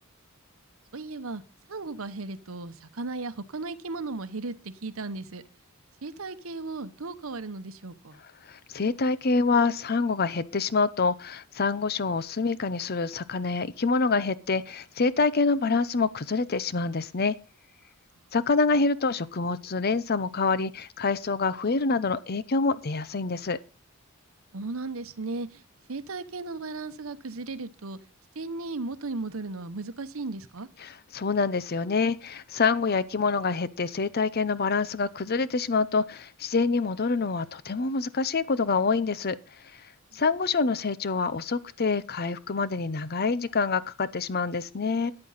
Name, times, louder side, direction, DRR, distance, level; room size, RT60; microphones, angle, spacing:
voice 1, 0.9-1.4 1.7-5.4 6.0-8.2 24.5-25.6 25.9-28.0 28.3-30.7 40.1-40.2, right 3 dB, 65° right, 0.9 m, -36 dB
voice 2, 8.5-17.3 18.3-23.6 30.8-39.4 40.1-45.1, left 4 dB, 45° left, 0.6 m, -26 dB
13.5 x 9.7 x 4.1 m
head